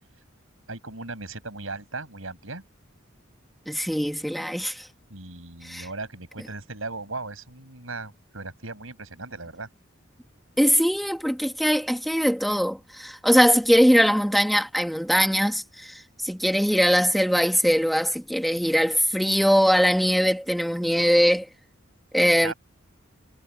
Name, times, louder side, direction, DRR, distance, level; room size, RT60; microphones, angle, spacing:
voice 1, 0.7-2.6 5.1-9.7 22.4-22.5, right 3 dB, 90° right, 7.8 m, -37 dB
voice 2, 3.7-4.9 5.6-5.9 10.6-21.5 22.1-22.5, equal, ahead, 2.3 m, -21 dB
head